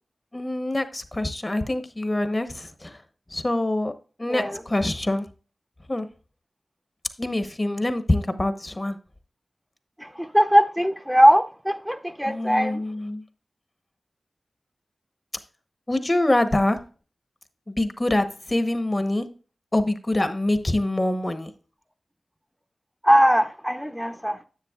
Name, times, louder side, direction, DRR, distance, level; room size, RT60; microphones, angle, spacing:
voice 1, 0.3-3.0 3.3-3.9 4.2-5.3 5.9-6.1 7.2-9.0 12.2-13.2 15.9-16.8 17.7-19.3 19.7-21.5, left 1 dB, 30° left, 0.9 m, -25 dB
voice 2, 4.3-4.6 10.0-12.8 23.0-24.4, equal, 5° right, 0.6 m, -20 dB
9.9 x 7.6 x 2.3 m
wide cardioid pair, 60°, 0 cm